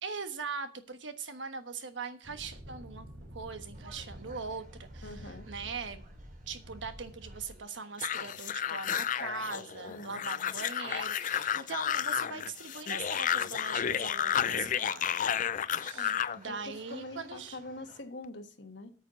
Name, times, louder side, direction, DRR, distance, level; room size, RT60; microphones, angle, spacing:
voice 1, 0.0-3.1 3.3-6.0 6.5-15.2 15.8-17.6, right 5 dB, 90° right, 1.3 m, -41 dB
sound 1, 2.2-7.6, equal, 65° right, 3.3 m, -48 dB
sound 2, 3.7-18.0, right 2 dB, 45° right, 2.8 m, -59 dB
voice 2, 5.0-5.5 9.9-10.2 15.9-16.2 16.5-18.9, left 2 dB, 70° left, 1.5 m, -44 dB
sound 3, 8.0-16.4, left 9 dB, 45° left, 0.5 m, -32 dB
8.9 x 7.4 x 6.9 m
head